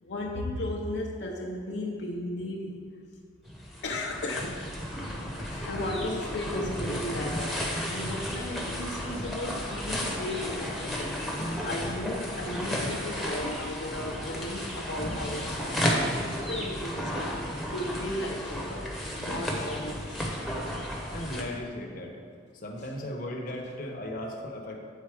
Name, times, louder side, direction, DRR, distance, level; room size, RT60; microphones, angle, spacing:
voice 1, 0.0-2.8 3.8-4.6 5.5-20.4 21.2-21.3 22.8-22.9 23.5-23.6, left 1 dB, 75° left, -1 dB, 0.6 m, -35 dB
sound 1, 3.5-21.4, equal, ahead, 0.9 m, -33 dB
voice 2, 21.1-22.2 22.6-24.8, left 1 dB, 50° left, 1 dB, 0.8 m, -36 dB
8.5 x 3.9 x 4.8 m, 2.3 s
head